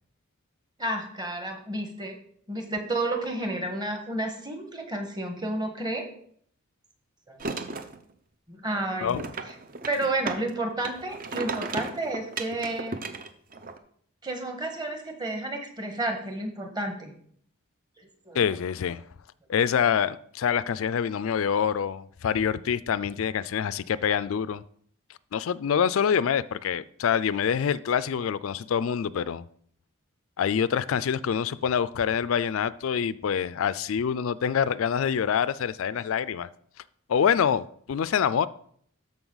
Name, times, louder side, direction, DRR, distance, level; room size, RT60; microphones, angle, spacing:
voice 1, 0.8-2.2 2.5-6.1 7.3-7.4 8.5-9.5 9.9-13.0 14.2-17.1 18.0-18.6, right 2 dB, 20° right, 1.5 m, -31 dB
sound 1, 7.4-8.0 9.1-10.5 10.8-13.8, right 3 dB, 40° right, 0.7 m, -34 dB
voice 2, 18.3-19.0 19.5-24.6 25.3-29.4 30.4-36.5 37.1-38.5, left 7 dB, 75° left, 0.4 m, -26 dB
13.0 x 5.3 x 4.0 m
head